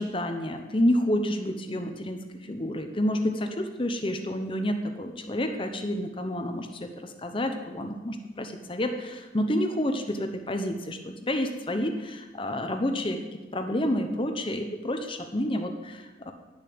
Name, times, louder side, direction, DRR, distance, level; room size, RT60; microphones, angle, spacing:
voice 1, 0.0-13.2 13.5-16.3, left 1 dB, 25° left, 6 dB, 0.9 m, -29 dB
10.5 x 6.7 x 7.8 m, 1.2 s
head